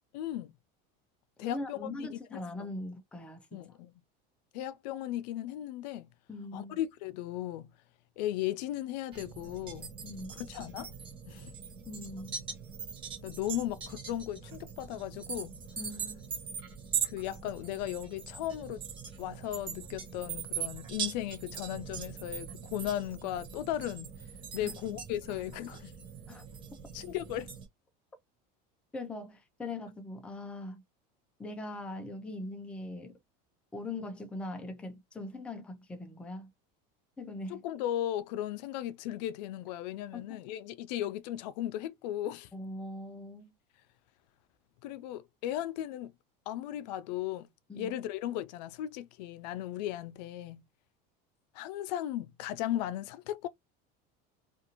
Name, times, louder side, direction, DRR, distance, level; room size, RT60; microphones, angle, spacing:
voice 1, 0.1-0.5 1.4-2.4 3.5-3.9 4.5-6.1 6.5-7.7 8.2-9.9 10.3-10.9 11.3-11.5 13.2-15.5 17.0-18.8 19.2-24.1 24.5-25.9 26.9-27.5 37.5-42.5 44.8-46.1 46.5-47.5 47.7-50.6 51.5-53.5, left 12 dB, 85° left, 0.4 m, -36 dB
voice 2, 1.4-3.8 6.3-6.8 10.0-10.4 11.9-12.5 15.8-16.3 24.6-24.7 26.3-26.4 28.9-30.8 31.4-33.2 33.7-36.5 37.2-37.6 40.1-40.4 42.5-43.5 47.7-47.9, left 2 dB, 5° left, 0.4 m, -41 dB
sound 1, 9.1-27.7, right 7 dB, 25° right, 0.8 m, -41 dB
2.5 x 2.5 x 2.8 m
cardioid pair, 170°, 21 cm